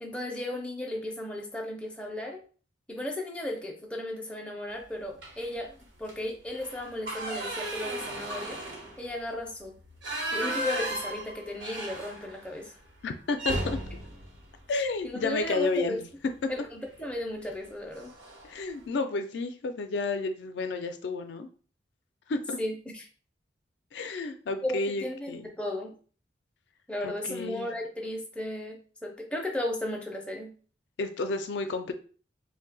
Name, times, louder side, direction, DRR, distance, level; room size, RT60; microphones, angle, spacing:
voice 1, 0.0-2.4 2.9-9.7 10.3-12.8 15.0-16.0 16.5-18.1 22.6-23.1 24.6-26.0 26.9-30.5, left 1 dB, 5° left, 0 dB, 0.4 m, -35 dB
sound 1, 5.2-5.6 6.0-6.1 6.5-12.5 12.8-12.9 13.3-15.5 16.8-17.1 17.5-17.6 17.9-18.6, right 1 dB, 85° right, 0.9 m, -35 dB
voice 2, 13.0-13.8 14.7-16.1 18.4-21.5 22.3-22.6 23.9-25.5 27.0-27.7 31.0-31.9, left 3 dB, 75° left, 8 dB, 0.4 m, -31 dB
2.7 x 2.1 x 3.9 m, 0.41 s
head